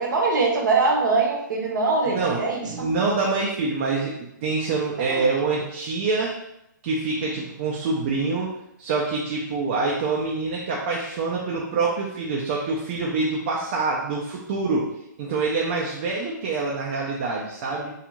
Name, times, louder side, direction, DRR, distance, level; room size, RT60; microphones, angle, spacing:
voice 1, 0.0-2.9 5.1-5.3, right 3 dB, 70° right, 0 dB, 0.7 m, -23 dB
voice 2, 2.1-6.3 6.8-8.5 8.8-14.9 15.2-17.9, right 3 dB, 40° right, -3 dB, 0.4 m, -26 dB
2.4 x 2.3 x 2.9 m, 0.83 s
hypercardioid pair, 140°, 11 cm